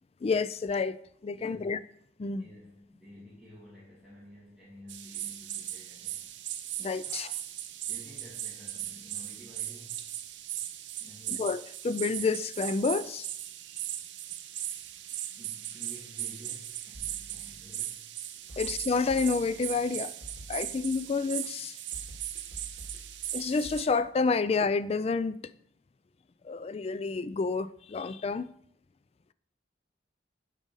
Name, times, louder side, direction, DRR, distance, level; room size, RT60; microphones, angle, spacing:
voice 1, 0.2-1.0 1.2-1.8 2.2-2.4 6.8-7.4 11.3-13.3 18.6-20.1 20.5-21.8 23.3-25.3 26.4-28.5, left 4 dB, 35° left, 0.3 m, -29 dB
voice 2, 1.3-1.6 2.4-6.3 7.0-7.1 7.8-10.1 11.0-11.5 14.7-14.8 15.3-18.1 18.5-18.7, equal, ahead, 2.5 m, -52 dB
sound 1, 4.9-23.9, right 12 dB, 85° right, 0.7 m, -38 dB
sound 2, 16.9-17.9 18.5-19.8 20.2-21.3 21.9-23.8, equal, 70° left, 3.4 m, -49 dB
11.5 x 5.0 x 5.4 m
head